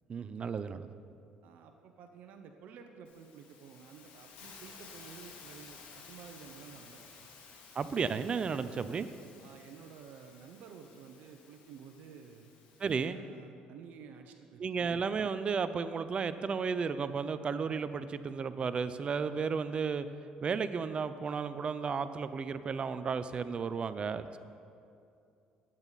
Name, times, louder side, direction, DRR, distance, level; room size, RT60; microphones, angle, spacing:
voice 1, 0.1-0.9 7.7-9.1 12.8-13.2 14.6-20.1 20.4-24.4, right 5 dB, 40° right, 12 dB, 0.6 m, -33 dB
voice 2, 1.4-7.3 9.4-12.5 13.1-14.9, right 6 dB, 70° right, 5 dB, 1.0 m, -52 dB
Hiss, 3.0-13.0, left 5 dB, 75° left, 2.6 m, -54 dB
21.0 x 9.0 x 4.2 m, 2.5 s
supercardioid pair, 90°, 3 cm